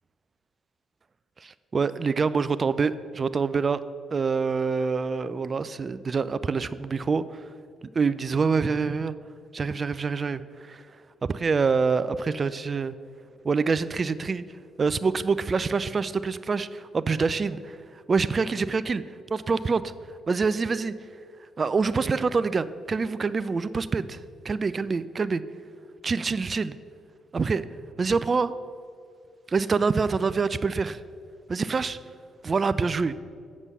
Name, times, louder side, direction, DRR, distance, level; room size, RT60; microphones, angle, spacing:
voice 1, 1.4-3.8 4.1-7.2 7.9-9.1 9.5-10.4 10.7-10.8 11.3-12.9 13.4-14.4 14.8-17.8 18.1-19.0 19.3-19.9 20.3-20.9 21.6-24.2 24.4-25.4 26.0-26.8 27.3-27.6 28.0-28.5 29.5-31.0 31.5-32.0 32.4-33.1, right 4 dB, 35° right, 15 dB, 0.4 m, -26 dB
8.0 x 7.3 x 5.5 m, 2.3 s
figure-of-eight pair, 40°, 0 cm